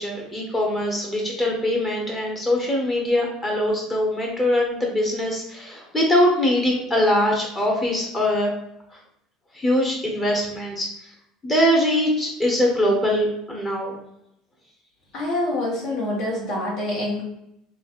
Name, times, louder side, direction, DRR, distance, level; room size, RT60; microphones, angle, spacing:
voice 1, 0.0-8.5 8.9-9.0 9.5-11.1 11.4-14.0, left 1 dB, 25° left, -1 dB, 0.9 m, -22 dB
voice 2, 15.1-17.2, left 1 dB, 65° left, -4 dB, 1.4 m, -26 dB
3.2 x 2.4 x 2.5 m, 0.79 s
supercardioid pair, 95°, 0 cm